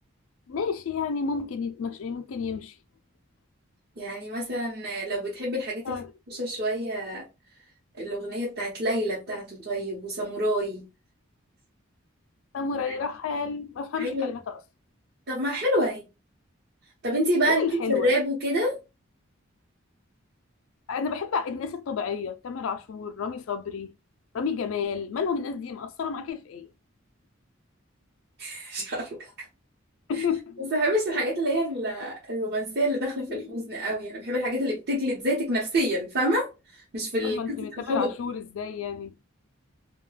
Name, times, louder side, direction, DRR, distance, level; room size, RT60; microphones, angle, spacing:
voice 1, 0.5-2.8 5.8-6.1 12.5-14.6 17.5-18.1 20.9-23.9 24.3-26.7 30.1-30.7 31.1-31.2 33.3-33.7 37.2-39.2, left 6 dB, 85° left, 0.4 m, -31 dB
voice 2, 4.0-6.0 6.3-7.3 8.0-10.9 12.9-13.0 14.0-14.3 15.3-16.1 17.0-18.8 28.4-29.5 30.1-30.2 30.6-38.1, equal, 50° right, 0.8 m, -28 dB
2.3 x 2.2 x 3.1 m
head